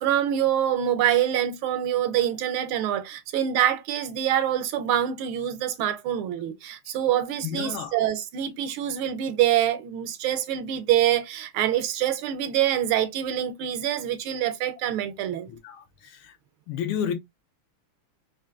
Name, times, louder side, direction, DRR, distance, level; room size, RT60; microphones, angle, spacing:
voice 1, 0.0-15.5, right 11 dB, 75° right, 1.4 m, -25 dB
voice 2, 7.4-7.9 15.6-15.8 16.7-17.1, left 8 dB, 75° left, 1.4 m, -29 dB
4.4 x 2.6 x 2.4 m
omnidirectional pair, 2.4 m